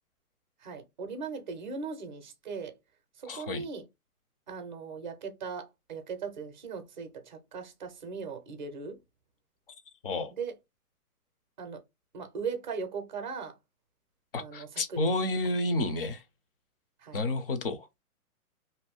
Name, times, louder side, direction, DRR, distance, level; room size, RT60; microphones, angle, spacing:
voice 1, 0.6-2.8 3.2-3.9 4.5-9.0 10.3-10.6 11.6-11.8 12.1-13.6 14.3-15.2 17.0-17.2, right 5 dB, 35° right, 0.5 m, -39 dB
voice 2, 3.3-3.7 10.0-10.3 14.3-16.2 17.1-17.9, left 2 dB, 40° left, 0.5 m, -30 dB
2.6 x 2.2 x 3.3 m
hypercardioid pair, 155°, 45 cm